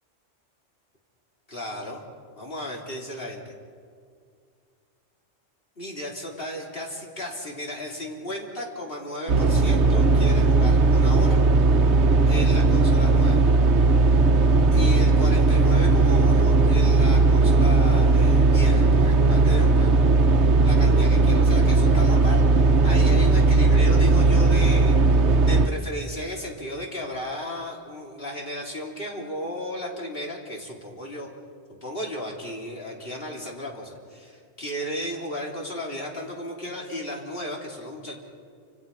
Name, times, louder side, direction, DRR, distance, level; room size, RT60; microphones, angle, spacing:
voice 1, 1.5-2.1 2.4-3.4 5.8-11.4 12.3-13.5 14.7-20.0 20.6-25.0 25.4-31.3 31.8-38.2, equal, 50° left, -1 dB, 3.9 m, -34 dB
sound 1, 9.3-25.7, right 3 dB, 70° right, 1.3 m, -18 dB
28.5 x 27.0 x 5.6 m, 2.2 s
omnidirectional pair, 1.2 m